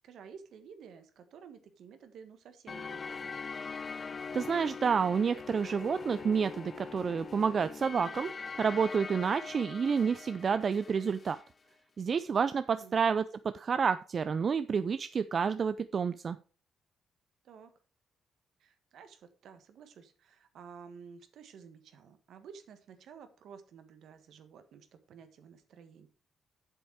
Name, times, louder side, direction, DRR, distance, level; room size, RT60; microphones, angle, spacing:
voice 1, 0.0-3.4 12.6-12.9 17.4-17.7 18.6-26.1, right 6 dB, 75° right, 9 dB, 1.4 m, -52 dB
sound 1, 2.7-11.5, left 5 dB, 45° left, 0.4 m, -42 dB
voice 2, 4.3-8.3 8.6-11.4 12.0-13.2 13.5-16.4, right 6 dB, 50° right, 12 dB, 0.5 m, -29 dB
8.2 x 7.1 x 4.7 m, 0.37 s
supercardioid pair, 65°, 0 cm